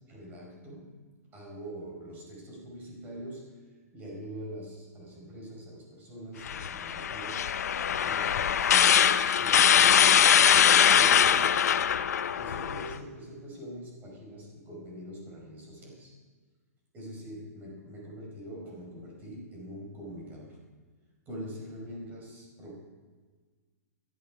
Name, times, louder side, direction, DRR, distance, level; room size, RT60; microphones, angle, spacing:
voice 1, 0.1-1.0 1.3-3.6 3.9-7.5 7.9-12.0 12.3-16.1 16.9-20.6 21.2-22.8, equal, 20° right, -2 dB, 5.1 m, -43 dB
sound 1, 6.5-13.0, left 8 dB, 75° left, 0.8 m, -22 dB
17.5 x 14.0 x 5.0 m, 1.5 s
hypercardioid pair, 150°, 9 cm